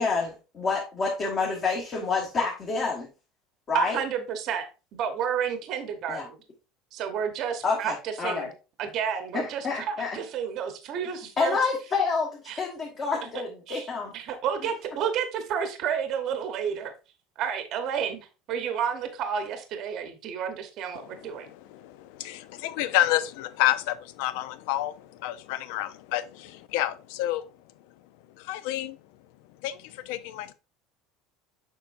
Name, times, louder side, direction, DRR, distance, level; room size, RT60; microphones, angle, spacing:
voice 1, 0.0-3.1 3.7-4.0 6.1-6.3 7.6-8.5 9.3-10.2 11.4-14.1, left 4 dB, 25° left, 1.2 m, -28 dB
voice 2, 3.7-4.6 4.9-6.4 6.9-8.5 8.8-11.6 12.5-12.6 13.7-13.8 14.1-16.9 17.4-18.2 18.5-21.5, right 8 dB, 45° right, 0.9 m, -30 dB
voice 3, 20.9-27.5 28.4-29.0 29.6-30.5, left 14 dB, 70° left, 0.5 m, -29 dB
6.9 x 5.3 x 2.5 m
cardioid pair, 155°, 0 cm